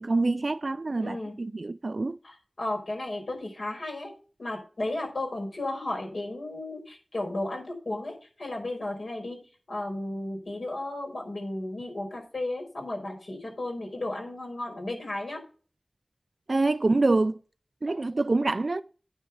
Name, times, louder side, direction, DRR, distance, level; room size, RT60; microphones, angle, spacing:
voice 1, 0.0-2.2 16.5-17.4 17.8-18.8, right 2 dB, 60° right, 0.4 m, -26 dB
voice 2, 1.0-1.4 2.2-4.1 4.4-9.4 9.7-15.4, left 2 dB, 75° left, 5.3 m, -34 dB
9.9 x 4.9 x 7.1 m
wide cardioid pair, 50°, 0 cm